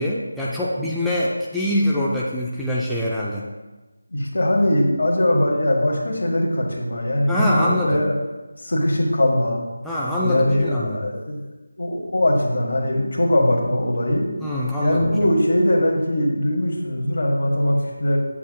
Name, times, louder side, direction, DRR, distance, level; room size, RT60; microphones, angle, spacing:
voice 1, 0.0-3.5 7.3-8.0 9.8-11.1 14.4-15.1, left 1 dB, ahead, -9 dB, 0.4 m, -24 dB
voice 2, 4.1-8.2 8.6-9.6 10.2-11.4 11.8-14.3 14.8-18.2, left 1 dB, 65° left, 0 dB, 1.4 m, -21 dB
7.3 x 7.0 x 2.2 m, 1.2 s
figure-of-eight pair, 170°, 0 cm